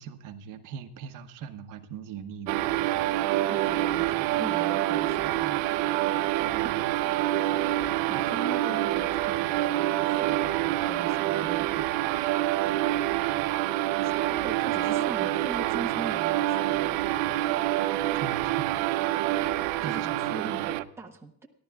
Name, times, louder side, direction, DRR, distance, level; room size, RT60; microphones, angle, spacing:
voice 1, 0.0-2.6 6.4-6.9 8.1-8.5 18.2-19.0 19.8-20.8, right 7 dB, 50° right, 7 dB, 1.0 m, -41 dB
sound 1, 2.5-20.8, right 14 dB, 85° right, 0.8 m, -27 dB
voice 2, 3.5-5.7 6.6-6.7 7.7-11.9 14.0-16.7 19.8-21.5, right 3 dB, 5° right, 1 dB, 1.0 m, -41 dB
28.5 x 11.5 x 2.3 m, 0.69 s
cardioid pair, 175°, 40 cm